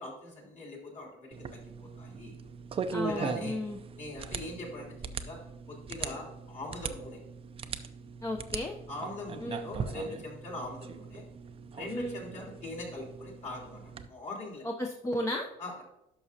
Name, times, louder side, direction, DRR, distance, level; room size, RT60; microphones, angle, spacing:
voice 1, 0.0-1.6 2.0-2.3 3.0-3.6 4.0-5.0 5.2-7.2 8.9-11.2 11.7-14.6 15.6-15.8, left 1 dB, 45° left, -2 dB, 3.3 m, -41 dB
sound 1, 1.3-14.1, right 5 dB, 35° right, 0.5 m, -40 dB
voice 2, 2.9-3.8 8.2-8.8 9.4-9.7 11.9-12.2 14.6-15.5, left 1 dB, 15° left, 1 dB, 0.7 m, -34 dB
11.0 x 6.2 x 2.8 m, 0.85 s
cardioid pair, 110°, 17 cm